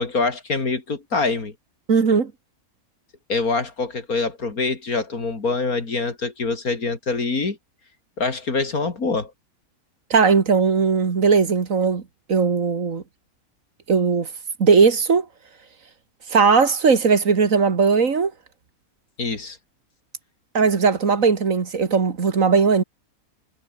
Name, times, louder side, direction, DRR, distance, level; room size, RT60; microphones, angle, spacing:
voice 1, 0.0-1.5 3.3-7.6 8.2-9.3 19.2-19.6, left 3 dB, 70° left, 3.7 m, -25 dB
voice 2, 1.9-2.3 10.1-12.0 12.3-13.0 13.9-14.3 14.6-15.3 16.3-18.3 20.5-22.8, right 5 dB, 60° right, 2.2 m, -18 dB
omnidirectional pair, 1.6 m